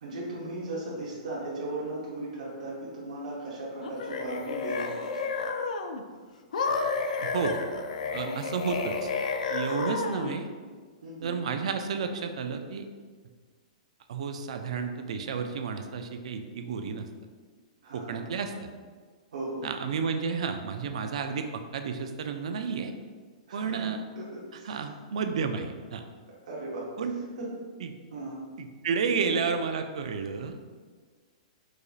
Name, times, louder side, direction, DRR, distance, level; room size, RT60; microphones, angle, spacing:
voice 1, 0.0-5.1 8.2-8.3 11.0-11.3 17.8-18.4 19.3-19.7 23.5-23.8 24.1-24.8 26.5-26.9 27.4-27.5 28.1-28.3 29.0-29.4, right 2 dB, 75° right, -6 dB, 0.9 m, -37 dB
sound 1, 3.8-6.0 6.5-10.4, left 4 dB, 85° left, 0.4 m, -31 dB
voice 2, 7.2-7.6 8.1-9.1 9.5-10.5 11.2-12.8 14.1-17.1 17.9-18.7 19.6-22.9 23.5-24.0 24.6-26.0 27.0-27.1 27.8-27.9 28.6-30.6, right 5 dB, 60° right, 7 dB, 0.3 m, -31 dB
4.6 x 2.6 x 2.4 m, 1.5 s
hypercardioid pair, 175°, 4 cm